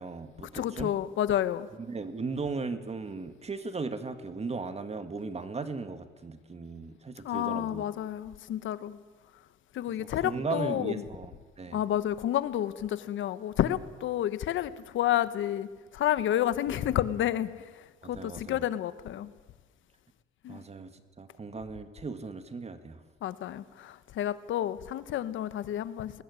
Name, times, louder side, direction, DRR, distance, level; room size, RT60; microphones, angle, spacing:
voice 1, 0.0-0.9 1.9-7.8 8.1-8.2 10.0-11.8 18.0-18.6 20.5-20.9 21.2-23.0, right 4 dB, 30° right, 1.9 m, -37 dB
voice 2, 0.5-1.7 7.2-9.0 9.7-11.0 11.7-15.7 15.9-17.5 18.1-19.3 20.4-20.6 23.2-26.1, left 11 dB, 75° left, 1.2 m, -30 dB
19.5 x 19.0 x 9.8 m
cardioid pair, 90°, 20 cm